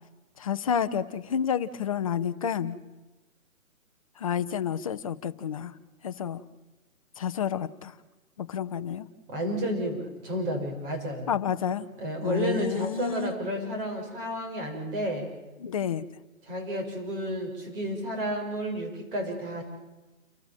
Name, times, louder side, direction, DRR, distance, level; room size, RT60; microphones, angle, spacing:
voice 1, 0.4-2.8 4.2-5.7 6.0-6.4 7.2-7.9 8.4-9.1 11.3-11.9 12.2-13.3 15.6-16.0, left 8 dB, 25° left, 10 dB, 0.7 m, -29 dB
voice 2, 9.3-11.4 12.0-15.3 16.4-19.6, right 1 dB, 40° right, 2 dB, 7.1 m, -31 dB
29.5 x 13.5 x 7.5 m, 1.1 s
hypercardioid pair, 155°, 42 cm